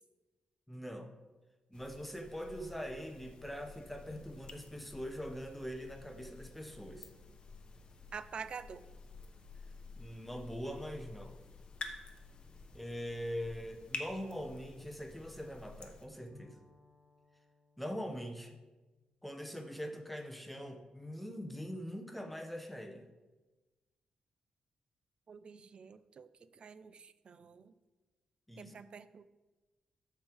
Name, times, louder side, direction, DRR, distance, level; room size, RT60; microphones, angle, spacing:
voice 1, 0.7-1.1 1.7-7.1 10.0-11.4 12.7-16.6 17.8-18.6 19.2-23.1 28.5-28.7, equal, 5° left, 4 dB, 0.8 m, -43 dB
sound 1, 1.7-16.1, left 3 dB, 40° left, 0.8 m, -50 dB
voice 2, 8.1-8.8 25.3-26.3 26.5-27.7 28.6-29.3, right 6 dB, 45° right, 13 dB, 0.4 m, -47 dB
Bowed string instrument, 16.3-20.0, left 2 dB, 90° right, 2.3 m, -65 dB
13.5 x 4.6 x 3.5 m, 1.2 s
wide cardioid pair, 140°, 2 cm